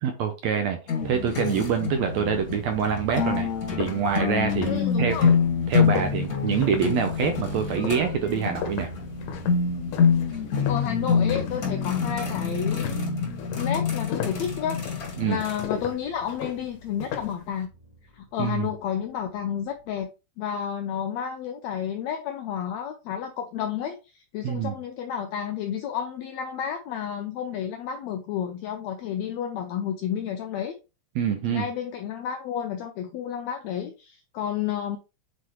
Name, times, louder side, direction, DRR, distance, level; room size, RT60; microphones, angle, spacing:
voice 1, 0.0-0.8 1.0-5.3 5.7-8.9 15.2-15.4 18.4-18.7 24.4-24.7 31.1-31.7, right 7 dB, 75° right, 1.7 m, -26 dB
sound 1, 0.9-15.6, left 6 dB, 40° left, 1.4 m, -26 dB
sound 2, 1.0-20.0, right 1 dB, 30° right, 2.1 m, -44 dB
sound 3, 2.7-2.8 3.2-11.7 12.0-12.4 12.7-17.4, left 7 dB, 70° left, 2.1 m, -36 dB
voice 2, 4.6-5.3 10.6-13.1 13.6-14.9 15.3-17.7 18.1-20.1 20.4-30.8 31.5-35.0, left 9 dB, 85° left, 1.5 m, -31 dB
7.5 x 4.1 x 3.0 m
omnidirectional pair, 3.8 m